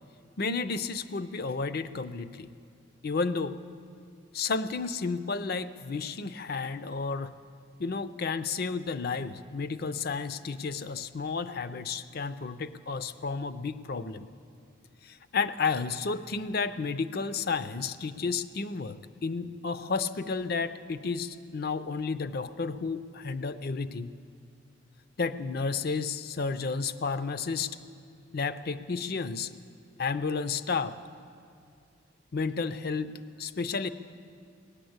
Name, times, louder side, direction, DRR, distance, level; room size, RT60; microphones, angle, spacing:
voice 1, 0.4-2.5 3.0-3.6 4.3-7.3 7.8-14.3 15.0-24.1 25.2-27.8 28.3-29.5 30.0-31.0 32.3-33.9, left 4 dB, 50° left, 13 dB, 0.5 m, -32 dB
18.0 x 10.5 x 7.9 m, 2.4 s
head